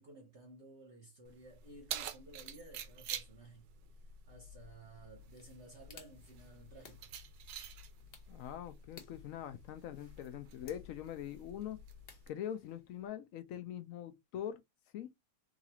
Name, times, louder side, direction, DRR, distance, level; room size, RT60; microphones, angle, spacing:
voice 1, 0.0-3.7 4.3-7.1, right 2 dB, 50° right, 0.9 m, -55 dB
Keys jangling, 1.3-12.3, right 7 dB, 85° right, 1.3 m, -49 dB
sound 1, 5.3-13.1, left 5 dB, 50° left, 1.0 m, -61 dB
voice 2, 8.3-11.8 12.3-14.6 14.9-15.1, left 10 dB, 75° left, 0.7 m, -43 dB
4.0 x 2.4 x 2.8 m
omnidirectional pair, 1.9 m